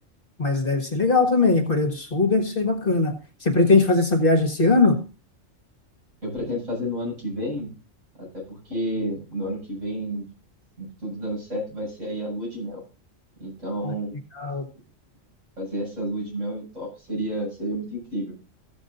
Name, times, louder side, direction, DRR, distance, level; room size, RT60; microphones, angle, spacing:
voice 1, 0.4-3.2 3.4-5.0 13.8-13.9 14.4-14.6, left 3 dB, 45° left, 6 dB, 1.7 m, -20 dB
voice 2, 6.2-7.7 8.2-10.3 10.8-12.8 13.4-14.2 15.6-18.3, equal, 70° right, -4 dB, 8.0 m, -30 dB
15.0 x 7.2 x 3.9 m, 0.33 s
omnidirectional pair, 1.3 m